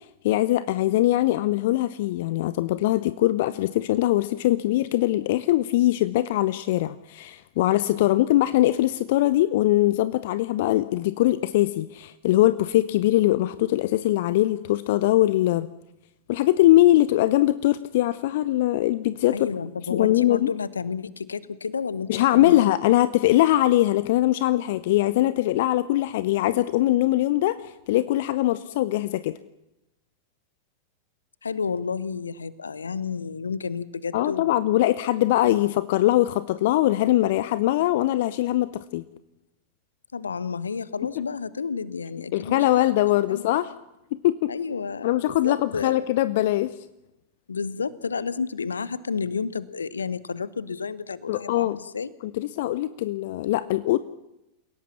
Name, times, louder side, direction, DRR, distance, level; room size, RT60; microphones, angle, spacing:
voice 1, 0.2-15.7 16.3-19.4 19.9-20.5 22.1-27.6 27.9-29.4 34.1-39.0 42.3-43.7 44.2-44.5 45.0-46.7 51.3-51.8 52.2-54.0, left 15 dB, 50° left, 16 dB, 0.7 m, -22 dB
voice 2, 19.3-22.8 31.4-34.7 40.1-42.9 43.3-43.5 44.5-46.0 47.5-52.1, left 5 dB, 75° left, 18 dB, 1.0 m, -31 dB
29.0 x 17.0 x 7.2 m, 0.90 s
figure-of-eight pair, 90°, 0 cm